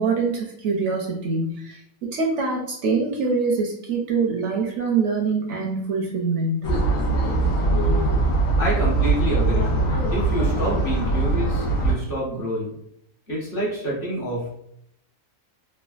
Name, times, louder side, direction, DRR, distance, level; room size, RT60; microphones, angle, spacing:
voice 1, 0.0-6.6, right 4 dB, 65° right, -1 dB, 0.8 m, -24 dB
sound 1, 6.6-11.9, right 2 dB, 85° left, 1.2 m, -21 dB
voice 2, 8.6-9.7 10.1-12.7 13.3-14.5, right 1 dB, 45° left, -5 dB, 1.0 m, -27 dB
3.2 x 2.2 x 2.3 m, 0.73 s
omnidirectional pair, 1.5 m